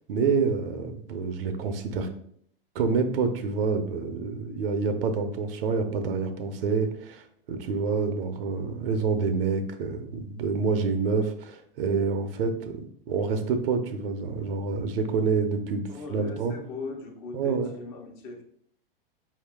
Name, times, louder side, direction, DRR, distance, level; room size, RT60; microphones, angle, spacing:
voice 1, 0.1-2.1 2.7-16.5 17.3-17.7, right 5 dB, 70° right, 7 dB, 0.8 m, -27 dB
voice 2, 15.9-18.4, left 4 dB, 45° left, 2 dB, 1.0 m, -39 dB
4.8 x 2.8 x 3.4 m, 0.65 s
hypercardioid pair, 120°, 29 cm